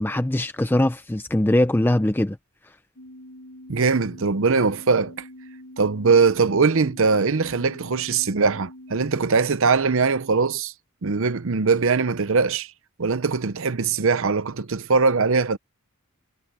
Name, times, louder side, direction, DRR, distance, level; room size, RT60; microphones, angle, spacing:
voice 1, 0.0-2.4, left 1 dB, 10° left, 0.5 m, -21 dB
sound 1, 3.0-9.3, left 1 dB, 70° left, 7.6 m, -44 dB
voice 2, 3.7-5.1 5.8-10.7 11.0-12.7 13.0-15.6, right 4 dB, 65° right, 0.7 m, -21 dB
head